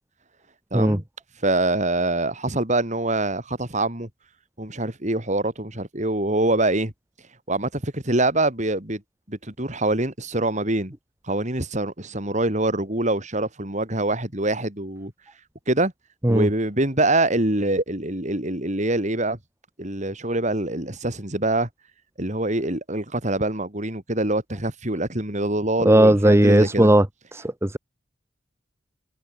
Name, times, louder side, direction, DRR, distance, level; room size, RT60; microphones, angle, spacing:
voice 1, 0.7-1.0 1.4-4.1 4.6-6.9 7.5-9.0 9.3-10.9 11.3-15.1 15.7-15.9 16.3-19.4 19.8-21.7 22.2-26.9, right 2 dB, 40° right, 4.2 m, -24 dB
voice 2, 25.8-27.0 27.3-27.8, right 1 dB, 15° right, 1.0 m, -16 dB
head